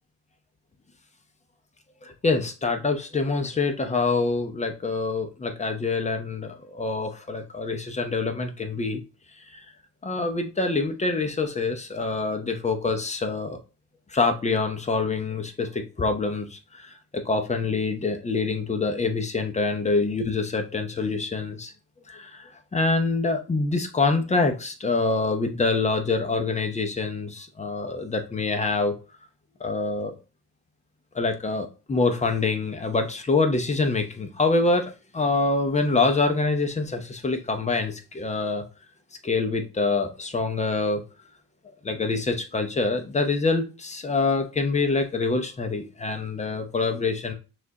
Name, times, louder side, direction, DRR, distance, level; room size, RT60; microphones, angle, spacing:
voice 1, 2.0-9.0 9.4-9.6 10.0-13.6 14.1-21.7 22.1-29.0 29.6-30.1 31.1-38.7 39.2-41.0 41.8-47.3, left 3 dB, 25° left, 6 dB, 0.8 m, -25 dB
6.0 x 2.5 x 2.8 m, 0.32 s
cardioid pair, 90°, 30 cm